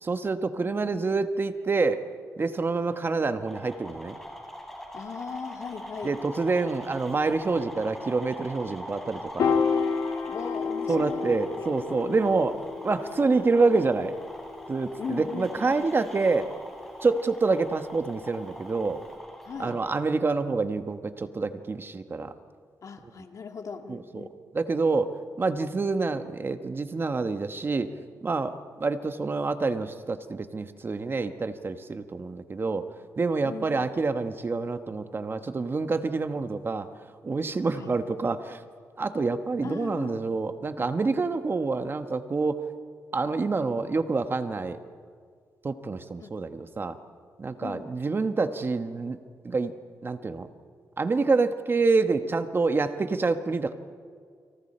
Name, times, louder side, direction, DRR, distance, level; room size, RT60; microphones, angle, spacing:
voice 1, 0.1-2.0 2.4-4.2 6.0-9.6 10.9-14.1 14.7-16.5 17.0-19.0 19.6-22.3 23.9-24.3 24.5-25.1 25.4-27.9 28.2-32.9 33.2-36.9 37.2-38.6 39.0-42.6 43.1-44.8 45.6-47.0 47.4-49.2 49.4-49.7 50.0-50.5 51.0-53.7, right 3 dB, 35° right, 9 dB, 1.2 m, -27 dB
sound 1, 3.4-19.9, equal, 5° left, 5.0 m, -42 dB
voice 2, 4.9-6.1 10.3-11.7 15.0-15.9 19.4-19.8 22.8-24.3 33.4-33.9 37.7-37.9 39.6-40.2 40.8-40.9 46.2-46.3 47.6-47.9, left 6 dB, 55° left, 5 dB, 1.9 m, -39 dB
Piano, 9.4-15.8, left 5 dB, 80° left, 2.0 m, -31 dB
29.5 x 26.0 x 4.4 m, 2.1 s
cardioid pair, 95°, 6 cm